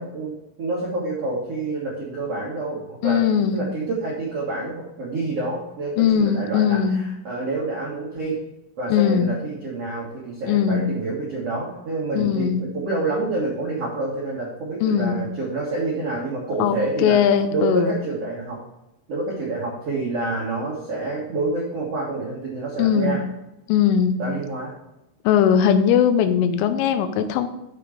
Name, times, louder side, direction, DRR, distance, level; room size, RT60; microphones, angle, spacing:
voice 1, 0.0-8.4 8.8-17.2 17.5-18.6 19.1-23.2 24.2-24.7, right 2 dB, 85° right, -5 dB, 1.3 m, -28 dB
voice 2, 3.0-3.6 6.0-7.0 8.9-9.3 10.4-10.9 12.2-12.7 14.8-15.2 16.6-18.0 22.8-23.2 23.7-24.2 25.3-27.5, left 8 dB, 80° left, 8 dB, 3.1 m, -19 dB
7.8 x 6.1 x 5.0 m, 0.88 s
omnidirectional pair, 5.9 m